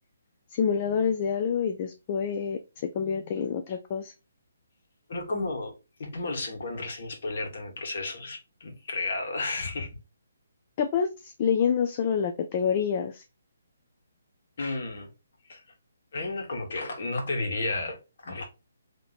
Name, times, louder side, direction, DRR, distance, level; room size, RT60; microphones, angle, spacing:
voice 1, 0.5-4.1 10.8-13.2, left 7 dB, 30° left, 0.4 m, -27 dB
voice 2, 5.1-5.7 6.0-9.9 14.6-15.1 15.4-15.6 16.1-18.5, left 2 dB, 60° left, 1.4 m, -32 dB
3.0 x 2.9 x 4.0 m
hypercardioid pair, 160°, 0 cm